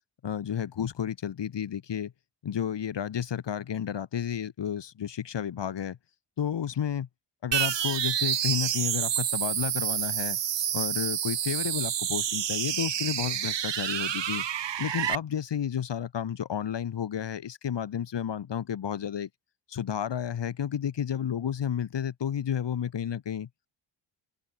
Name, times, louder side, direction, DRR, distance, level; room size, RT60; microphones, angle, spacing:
voice 1, 0.2-2.1 2.4-6.0 6.4-7.1 7.4-10.4 10.7-14.5 14.8-19.3 19.7-23.5, left 9 dB, 60° left, 2.7 m, -31 dB
sound 1, 7.5-15.2, right 10 dB, 65° right, 1.9 m, -29 dB
open air
cardioid pair, 100°, 47 cm